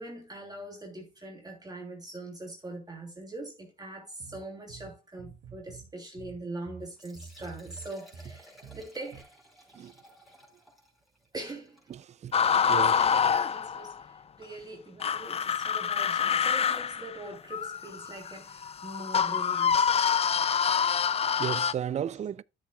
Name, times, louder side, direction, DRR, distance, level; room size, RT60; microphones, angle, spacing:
voice 1, 0.0-9.2 11.3-11.9 12.6-20.0, right 2 dB, 20° right, 2.9 m, -42 dB
sound 1, 4.2-9.2, right 5 dB, 65° right, 2.4 m, -48 dB
Liquid, 6.8-13.7, equal, ahead, 5.0 m, -57 dB
voice 2, 11.9-13.0 21.2-22.4, right 9 dB, 35° right, 0.4 m, -35 dB
sound 2, 12.3-14.0 15.0-21.7, left 7 dB, 30° left, 0.4 m, -26 dB
12.5 x 7.3 x 2.3 m
cardioid pair, 90°, 20 cm